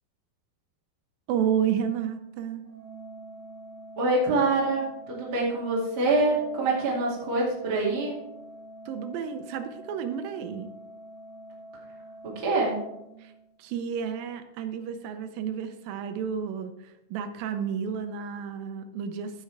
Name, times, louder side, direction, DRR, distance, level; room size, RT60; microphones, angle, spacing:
voice 1, 1.3-2.6 8.9-10.7 13.2-13.3 13.6-19.4, right 8 dB, 75° right, 8 dB, 2.3 m, -31 dB
Organ, 2.6-13.7, equal, 10° left, 1.1 m, -46 dB
voice 2, 4.0-8.2 12.4-12.8, right 2 dB, 35° right, -5 dB, 2.8 m, -25 dB
15.0 x 6.7 x 3.4 m, 0.86 s
omnidirectional pair, 4.5 m